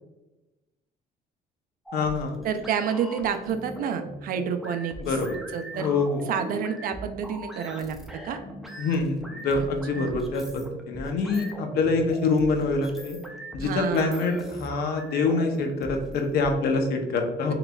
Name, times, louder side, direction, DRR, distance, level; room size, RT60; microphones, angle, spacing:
voice 1, 1.9-2.4 5.0-5.4 5.7-6.3 8.8-13.2 13.5-17.5, left 3 dB, 65° left, 4 dB, 0.7 m, -25 dB
sound 1, 1.9-16.5, right 1 dB, ahead, 0.6 m, -41 dB
voice 2, 2.4-5.2 5.5-5.9 6.3-8.0 8.2-8.4 9.5-9.7 9.9-10.2 13.6-14.3, right 7 dB, 60° right, 8 dB, 0.4 m, -29 dB
3.8 x 3.1 x 2.3 m, 1.0 s
cardioid pair, 110°, 17 cm